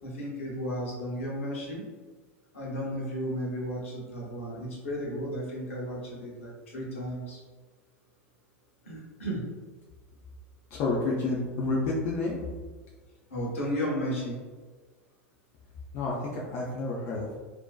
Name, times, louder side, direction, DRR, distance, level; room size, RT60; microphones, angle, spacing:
voice 1, 0.0-1.8 2.5-7.4 8.8-9.4 13.3-14.4, equal, 70° left, -4 dB, 0.8 m, -34 dB
voice 2, 10.7-12.4 15.9-17.4, left 3 dB, 40° left, -4 dB, 0.4 m, -29 dB
2.5 x 2.1 x 2.3 m, 1.4 s
figure-of-eight pair, 85°, 7 cm